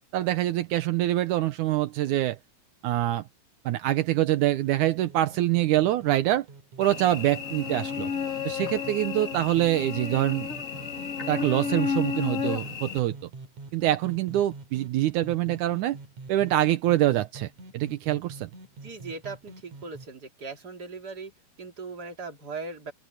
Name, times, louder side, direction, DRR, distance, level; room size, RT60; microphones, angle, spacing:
voice 1, 0.1-2.4 2.8-3.2 3.7-6.5 6.8-8.1 8.5-10.5 11.3-13.2 13.7-16.0 16.3-18.5, right 14 dB, 80° right, 1.8 m, -25 dB
sound 1, 3.9-20.1, right 3 dB, 50° right, 3.8 m, -46 dB
Cricket / Buzz, 6.8-13.0, left 6 dB, 65° left, 0.7 m, -32 dB
voice 2, 18.8-21.3 21.6-22.9, right 4 dB, 25° right, 3.1 m, -39 dB
open air
omnidirectional pair, 4.6 m